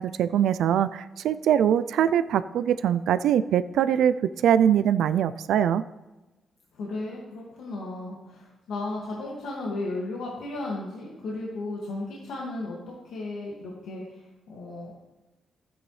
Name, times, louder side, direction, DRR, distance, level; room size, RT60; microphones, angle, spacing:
voice 1, 0.0-4.1 4.4-5.8, right 9 dB, 90° right, 13 dB, 0.3 m, -22 dB
voice 2, 6.7-12.8 13.1-14.9, left 2 dB, 85° left, -4 dB, 1.9 m, -35 dB
13.5 x 9.0 x 3.2 m, 1.1 s
wide cardioid pair, 165°, 0 cm